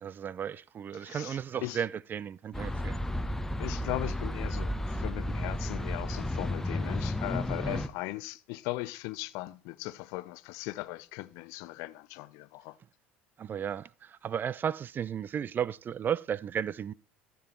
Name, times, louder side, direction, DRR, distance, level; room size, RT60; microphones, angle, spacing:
voice 1, 0.0-3.0 7.7-7.8 13.4-16.9, right 8 dB, 35° right, 0.4 m, -34 dB
voice 2, 0.9-1.8 3.6-12.8, left 19 dB, 60° left, 0.6 m, -38 dB
sound 1, 2.5-7.9, left 1 dB, 5° left, 0.9 m, -33 dB
14.0 x 7.1 x 4.4 m
figure-of-eight pair, 65°, 6 cm